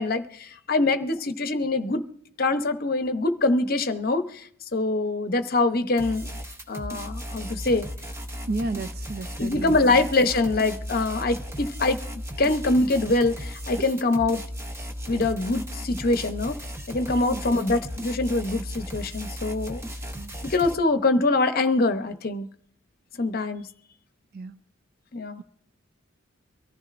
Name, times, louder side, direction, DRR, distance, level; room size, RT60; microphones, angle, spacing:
voice 1, 0.0-2.0 2.4-4.4 4.7-6.3 6.7-7.9 9.4-12.0 12.4-14.4 15.1-16.5 16.9-19.8 20.4-22.5 23.2-23.7 25.1-25.4, left 2 dB, 45° left, 9 dB, 0.8 m, -24 dB
sound 1, 6.0-20.7, equal, 15° right, 0.8 m, -36 dB
voice 2, 8.4-10.0 13.8-13.9 17.3-17.7 20.2-20.4 24.3-24.6, right 3 dB, 45° right, 12 dB, 0.5 m, -33 dB
23.5 x 14.5 x 2.5 m, 0.64 s
head